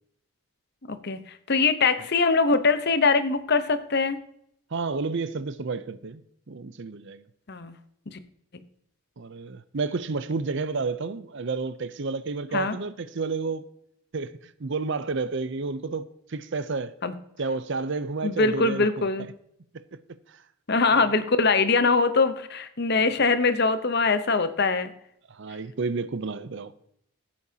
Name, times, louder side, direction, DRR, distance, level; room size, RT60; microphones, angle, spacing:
voice 1, 0.9-1.2 1.5-4.2 7.5-7.7 8.1-8.2 12.5-12.8 17.0-17.1 18.2-19.3 20.7-24.9, left 4 dB, 45° left, 0.8 m, -22 dB
voice 2, 4.7-6.2 6.5-7.2 9.2-13.6 14.1-16.9 17.4-19.1 20.9-21.2 23.2-23.4 25.3-26.7, right 4 dB, 55° right, 0.6 m, -31 dB
15.5 x 8.7 x 2.8 m
head